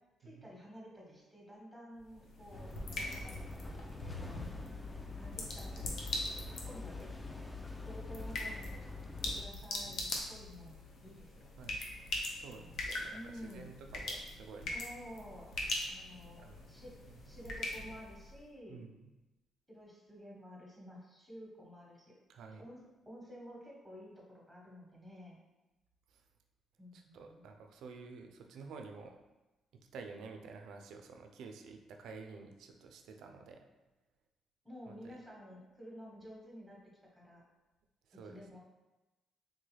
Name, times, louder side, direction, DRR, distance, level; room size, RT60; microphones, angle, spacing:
voice 1, 0.2-4.4 5.2-5.8 6.7-7.4 7.8-8.7 9.2-11.5 12.5-12.7 13.1-13.7 14.7-15.5 15.9-16.9 17.2-18.8 19.7-22.1 22.6-25.4 26.8-27.4 34.6-36.8 37.1-37.4 38.2-38.6, equal, ahead, -4 dB, 1.1 m, -52 dB
sound 1, 2.0-18.4, left 2 dB, 70° left, 0.6 m, -42 dB
sound 2, 2.5-9.4, left 3 dB, 15° left, 0.3 m, -45 dB
voice 2, 12.3-14.7 16.4-16.7 17.2-17.3 18.7-19.1 22.3-22.7 26.1-26.2 26.9-29.2 29.9-33.7 34.9-35.2 38.1-38.6, right 4 dB, 80° right, 4 dB, 0.3 m, -51 dB
3.4 x 2.3 x 3.2 m, 1.1 s
cardioid pair, 90°, 0 cm